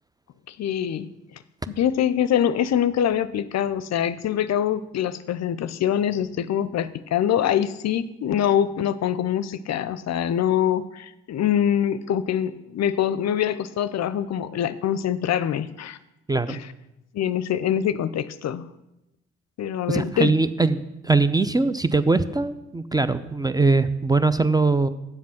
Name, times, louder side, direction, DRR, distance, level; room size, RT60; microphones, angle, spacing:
voice 1, 0.5-1.1 1.7-16.0 16.5-16.6 17.1-18.7 19.6-20.3, left 10 dB, 50° left, 15 dB, 0.6 m, -24 dB
voice 2, 19.9-24.9, right 3 dB, 10° right, 13 dB, 0.5 m, -21 dB
8.0 x 7.4 x 5.8 m, 0.93 s
hypercardioid pair, 50°, 34 cm